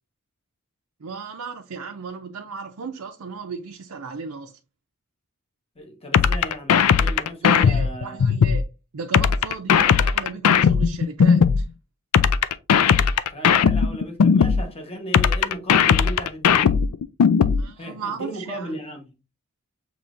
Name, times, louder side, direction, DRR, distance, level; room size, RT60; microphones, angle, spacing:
voice 1, 1.0-4.6 7.4-8.7 8.9-11.7 17.6-18.8, right 5 dB, 85° right, 0.6 m, -35 dB
voice 2, 5.7-8.2 13.3-16.8 17.8-19.1, equal, 25° left, 1.2 m, -36 dB
sound 1, 6.1-8.6 9.1-11.6 12.1-14.6 15.1-17.6, left 6 dB, 85° left, 0.4 m, -17 dB
7.0 x 3.0 x 2.5 m
head